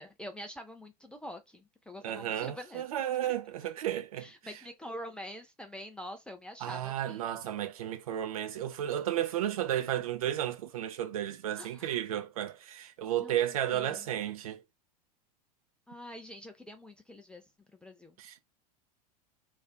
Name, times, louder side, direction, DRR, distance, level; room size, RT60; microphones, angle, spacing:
voice 1, 0.0-2.8 3.2-3.3 3.9-7.3 11.6-11.9 13.2-13.4 13.7-14.1 15.9-17.5 17.7-18.2, equal, 5° left, 0.3 m, -46 dB
voice 2, 2.0-4.3 6.6-14.6 18.2-18.4, right 11 dB, 60° right, 0.5 m, -33 dB
2.4 x 2.4 x 2.2 m
figure-of-eight pair, 85°, 20 cm